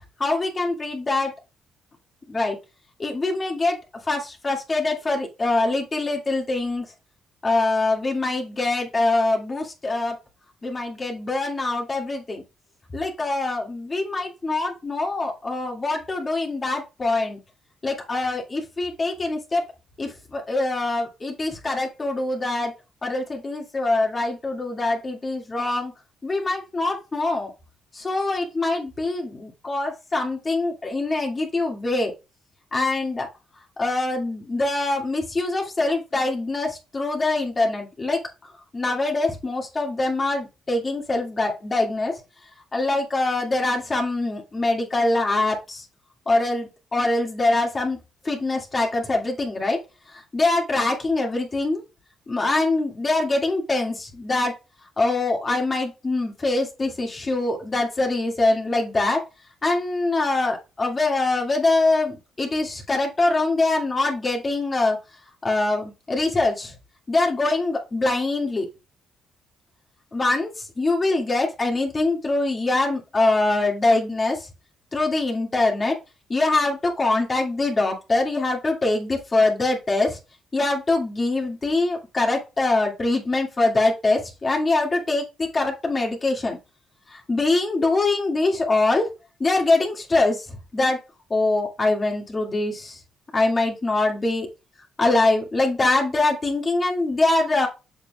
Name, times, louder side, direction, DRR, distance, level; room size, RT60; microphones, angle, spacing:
voice 1, 0.2-1.3 2.3-2.6 3.0-3.8 4.1-6.9 7.4-10.2 10.6-12.4 12.9-17.4 17.8-19.6 20.0-22.7 23.0-25.9 26.2-27.5 27.9-32.1 32.7-33.3 33.8-38.2 38.7-42.2 42.7-45.8 46.3-48.0 48.2-49.8 50.1-51.8 52.3-54.5 55.0-59.2 59.6-65.0 65.4-66.7 67.1-68.7 70.1-74.5 74.9-76.0 76.3-80.2 80.5-86.6 87.1-89.1 89.4-91.0 91.3-93.0 93.3-94.5 95.0-97.7, left 2 dB, 30° left, 0 dB, 2.1 m, -23 dB
7.4 x 6.8 x 2.3 m, 0.27 s
cardioid pair, 90°, 0 cm